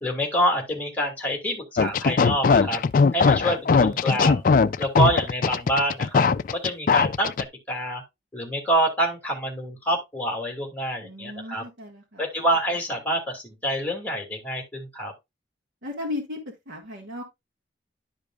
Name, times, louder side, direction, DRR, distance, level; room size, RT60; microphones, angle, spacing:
voice 1, 0.0-2.8 3.1-4.4 4.8-7.3 7.7-8.0 8.3-11.6 12.2-15.1, right 1 dB, 10° left, 2.3 m, -26 dB
sound 1, 1.8-7.4, left 5 dB, 45° left, 0.3 m, -20 dB
voice 2, 11.0-12.3 15.8-16.4 16.7-17.2, left 2 dB, 80° right, 1.8 m, -35 dB
11.5 x 5.1 x 2.4 m
head